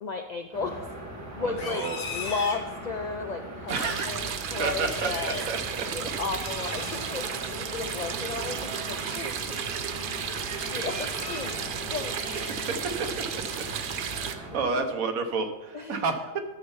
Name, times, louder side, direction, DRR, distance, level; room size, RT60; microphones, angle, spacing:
voice 1, 0.0-0.8 1.4-1.8 2.1-5.4 5.9-9.4 10.7-11.6 11.9-12.1 14.6-14.9 15.7-16.1, left 4 dB, 80° left, 5 dB, 0.3 m, -34 dB
sound 1, 0.5-14.7, right 1 dB, 10° right, 1.6 m, -40 dB
voice 2, 1.3-2.0 3.7-4.1 4.6-4.9 5.5-5.6 12.5-12.6 13.3-13.4 14.2-16.4, right 4 dB, 80° right, 6 dB, 1.4 m, -30 dB
Livestock farm animals working animals, 1.4-3.1 3.6-4.2 4.7-5.6 6.3-7.0 8.7-9.3 9.7-10.0 10.4-11.6 12.0-13.0 13.4-13.8 14.2-14.6, left 3 dB, 45° left, 1.3 m, -41 dB
sound 2, 3.7-14.4, right 7 dB, 55° right, 0.6 m, -34 dB
12.0 x 4.4 x 5.6 m, 1.1 s
omnidirectional pair, 1.4 m